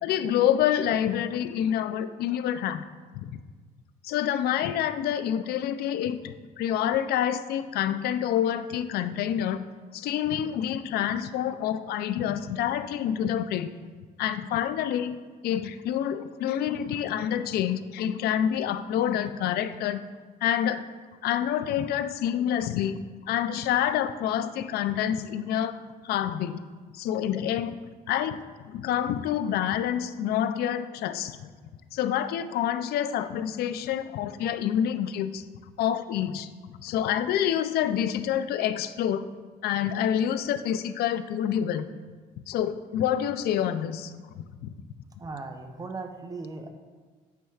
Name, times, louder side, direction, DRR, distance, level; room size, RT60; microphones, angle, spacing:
voice 1, 0.0-2.8 3.1-3.4 4.0-9.6 9.9-13.7 14.2-15.2 15.4-20.0 20.4-20.8 21.2-23.0 23.2-25.8 26.0-26.6 26.9-27.8 28.1-31.5 31.9-35.4 35.8-39.2 39.6-41.9 42.5-44.4, left 10 dB, 70° left, 11 dB, 0.4 m, -27 dB
voice 2, 45.2-46.7, right 3 dB, 20° right, 5 dB, 0.6 m, -37 dB
9.2 x 4.3 x 2.3 m, 1.5 s
cardioid pair, 110°, 17 cm